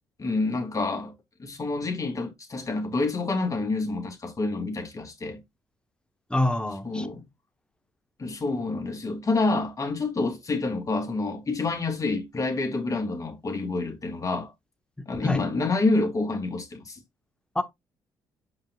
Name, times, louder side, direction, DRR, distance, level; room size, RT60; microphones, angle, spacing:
voice 1, 0.2-1.1 1.4-5.4 6.8-7.3 8.2-14.5 15.1-17.0, left 3 dB, 35° left, 3.0 m, -28 dB
voice 2, 6.3-7.1 15.0-15.5 17.5-17.6, left 1 dB, 10° left, 1.1 m, -26 dB
7.5 x 5.8 x 2.4 m
hypercardioid pair, 50°, 10 cm